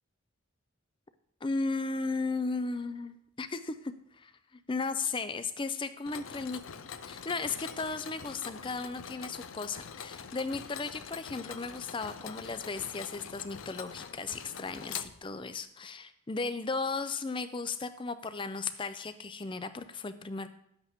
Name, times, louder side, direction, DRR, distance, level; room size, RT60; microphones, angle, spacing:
voice 1, 1.4-6.6 7.0-20.5, left 4 dB, 25° left, 11 dB, 0.5 m, -35 dB
Mechanisms, 6.1-15.6, left 7 dB, 80° left, 0.5 m, -45 dB
10.5 x 8.1 x 3.6 m, 0.74 s
head